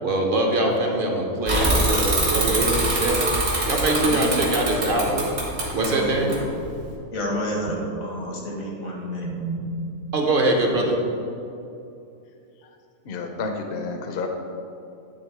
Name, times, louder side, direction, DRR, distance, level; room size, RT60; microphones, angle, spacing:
voice 1, 0.0-3.2 3.7-5.3 5.7-6.3 9.2-9.6 10.1-10.9, right 2 dB, 45° right, 1 dB, 1.0 m, -23 dB
voice 2, 1.3-1.7 2.4-3.2 4.0-4.3 5.8-6.3 7.1-9.3, equal, 85° left, -2 dB, 1.7 m, -30 dB
Bicycle / Mechanisms, 1.5-6.9, right 1 dB, 65° right, 2.1 m, -24 dB
voice 3, 13.1-14.3, left 4 dB, 55° left, 4 dB, 0.7 m, -30 dB
10.0 x 3.4 x 4.7 m, 2.7 s
omnidirectional pair, 1.4 m